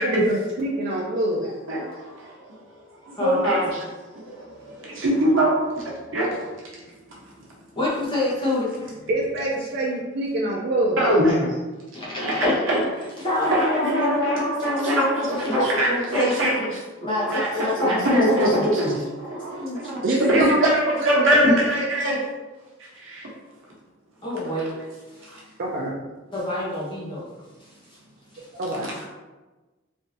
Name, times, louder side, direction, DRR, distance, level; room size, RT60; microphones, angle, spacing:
voice 1, 0.0-1.5 9.1-11.1 20.0-21.9 25.6-25.9 28.5-28.9, right 1 dB, 55° right, -3 dB, 0.4 m, -25 dB
voice 2, 1.7-2.6 2.9-3.8 4.1-6.4 7.1-7.3 11.0-11.6 12.2-12.8 13.4-16.7 17.3-22.2 22.8-23.3 25.3-25.4 28.8-29.0, right 1 dB, 70° right, -5 dB, 0.9 m, -23 dB
voice 3, 7.8-8.7 11.9-12.5 13.2-16.3 17.0-18.6 19.3-20.0 21.3-21.5 24.2-24.8 26.3-27.2, left 2 dB, 25° left, -6 dB, 0.9 m, -26 dB
3.2 x 2.6 x 2.7 m, 1.2 s
head